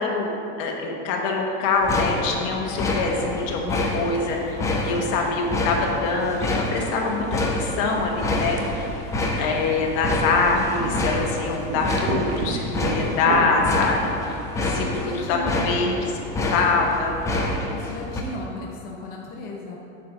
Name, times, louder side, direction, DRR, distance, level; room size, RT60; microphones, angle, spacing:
voice 1, 0.0-8.9 9.4-17.2, left 4 dB, 45° left, 0 dB, 1.2 m, -24 dB
sound 1, 1.8-18.2, left 2 dB, 10° left, 0.4 m, -28 dB
voice 2, 4.4-5.4 14.8-15.6 17.7-19.8, left 1 dB, 30° left, -2 dB, 0.7 m, -36 dB
sound 2, 6.8-15.0, right 4 dB, 65° right, 1.0 m, -34 dB
8.3 x 4.1 x 6.0 m, 2.8 s
supercardioid pair, 160°, 32 cm